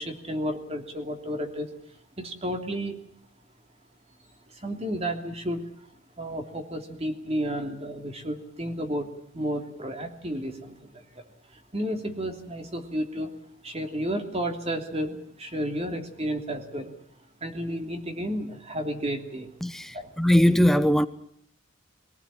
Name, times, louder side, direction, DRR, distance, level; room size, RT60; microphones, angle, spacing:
voice 1, 0.0-1.7 2.2-3.0 4.5-5.9 6.2-11.2 11.5-13.3 13.6-16.9 17.4-19.5 19.9-20.1, equal, 30° right, 3.0 m, -32 dB
voice 2, 19.6-21.1, equal, ahead, 0.9 m, -20 dB
24.0 x 18.0 x 8.8 m
head